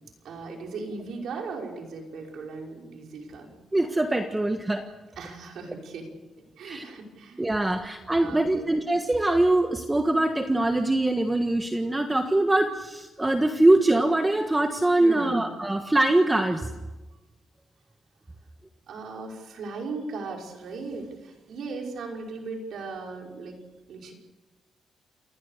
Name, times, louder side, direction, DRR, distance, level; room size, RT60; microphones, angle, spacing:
voice 1, 0.2-3.5 5.2-6.1 6.6-7.4 8.2-8.7 15.0-15.4 18.9-23.6 23.9-24.1, right 4 dB, 75° right, 1 dB, 5.6 m, -37 dB
voice 2, 3.7-4.8 6.6-6.8 7.4-16.7, right 2 dB, 15° right, 5 dB, 1.4 m, -23 dB
28.5 x 20.0 x 6.7 m, 1.1 s
cardioid pair, 125°, 0 cm